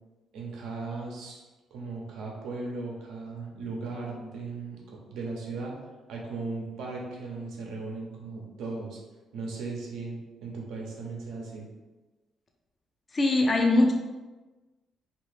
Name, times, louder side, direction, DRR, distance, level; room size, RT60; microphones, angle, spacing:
voice 1, 0.3-1.4 1.7-5.8 6.1-9.0 9.3-11.7, right 3 dB, 80° right, -1 dB, 0.7 m, -37 dB
voice 2, 13.1-13.9, left 2 dB, 35° left, 1 dB, 0.4 m, -21 dB
2.7 x 2.7 x 3.3 m, 1.2 s
cardioid pair, 90°, 0 cm